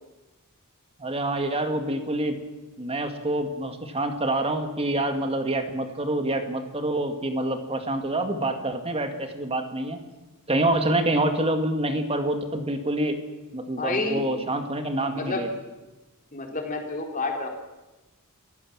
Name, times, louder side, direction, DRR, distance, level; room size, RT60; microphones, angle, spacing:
voice 1, 1.0-2.4 2.8-10.0 10.5-13.2 13.5-15.5, right 1 dB, 25° right, 6 dB, 2.1 m, -26 dB
voice 2, 13.8-14.2 15.1-15.5 16.3-17.5, left 3 dB, 35° left, 2 dB, 3.9 m, -29 dB
28.0 x 15.5 x 7.5 m, 1.1 s
head